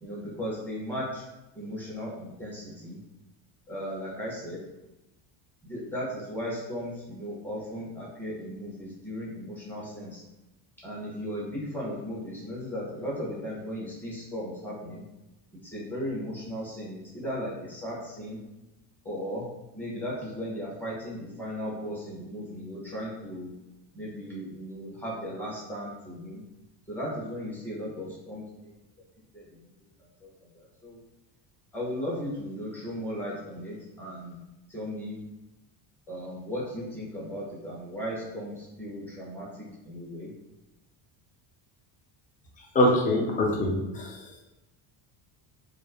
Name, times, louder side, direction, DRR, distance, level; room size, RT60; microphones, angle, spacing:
voice 1, 0.0-1.2 1.6-3.0 3.7-4.6 5.6-10.2 10.8-15.0 15.6-18.4 19.0-19.5 19.7-23.5 23.9-26.4 26.9-28.7 29.3-29.4 30.5-31.0 31.7-34.4 34.7-35.2 36.1-40.3, equal, 5° left, -6 dB, 0.8 m, -36 dB
voice 2, 42.7-44.2, left 1 dB, 20° left, 0 dB, 0.3 m, -24 dB
2.5 x 2.0 x 2.4 m, 0.97 s
cardioid pair, 110°, 50 cm